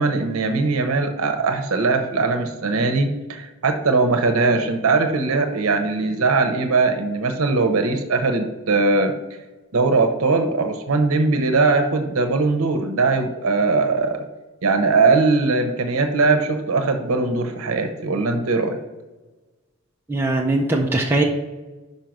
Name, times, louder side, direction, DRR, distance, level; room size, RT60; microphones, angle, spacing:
voice 1, 0.0-9.1 9.7-14.2 14.6-18.8, right 3 dB, 80° right, 6 dB, 0.7 m, -20 dB
voice 2, 20.1-21.2, right 2 dB, 10° right, -1 dB, 0.5 m, -20 dB
5.5 x 5.1 x 5.9 m, 1.2 s
head